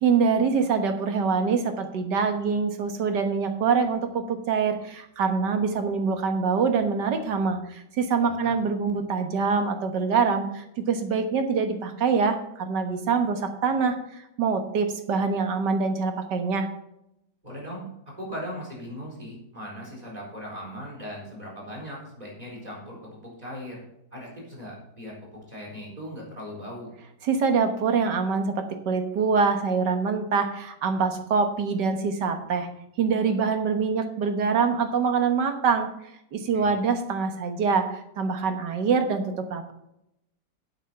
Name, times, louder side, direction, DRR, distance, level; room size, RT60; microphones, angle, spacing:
voice 1, 0.0-16.7 27.2-32.7 33.0-35.9 36.3-39.7, right 5 dB, 80° right, 6 dB, 1.9 m, -25 dB
voice 2, 8.2-8.6 17.4-17.9 18.2-23.8 24.1-26.9 36.5-36.7, equal, 20° right, -3 dB, 4.2 m, -39 dB
9.4 x 8.1 x 5.6 m, 0.82 s
omnidirectional pair, 1.8 m